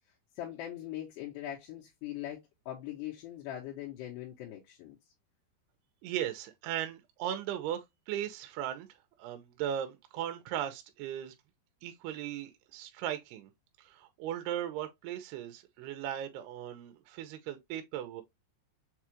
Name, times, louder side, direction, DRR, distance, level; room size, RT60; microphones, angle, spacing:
voice 1, 0.4-2.4 2.7-5.0, left 12 dB, 75° left, 3.0 m, -41 dB
voice 2, 6.0-8.9 9.2-11.3 11.8-13.5 13.8-18.2, right 11 dB, 80° right, 2.4 m, -37 dB
6.7 x 2.4 x 2.9 m
omnidirectional pair, 5.1 m